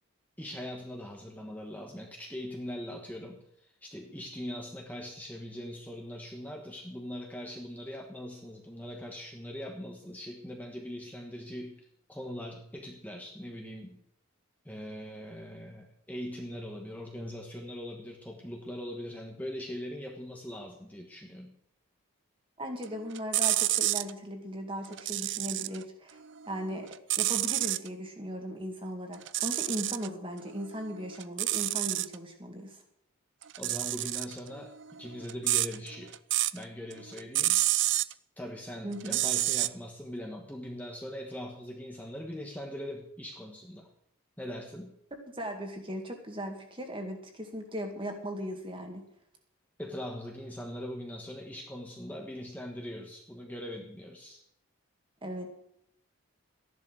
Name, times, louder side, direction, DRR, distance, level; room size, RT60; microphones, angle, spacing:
voice 1, 0.4-14.0 14.6-21.5 33.6-36.2 36.5-37.6 38.4-43.9 44.4-44.9 49.8-54.4, left 1 dB, 5° left, 0 dB, 1.3 m, -41 dB
voice 2, 22.6-26.2 26.5-32.8 38.8-39.2 45.3-49.1 55.2-55.5, equal, 25° right, 3 dB, 2.2 m, -38 dB
sound 1, 22.8-24.1 24.8-25.8 26.2-27.9 29.1-30.1 30.5-32.1 33.4-36.6 36.9-38.1 39.0-39.7, right 16 dB, 55° right, 0.4 m, -29 dB
14.0 x 11.0 x 6.3 m, 0.73 s
head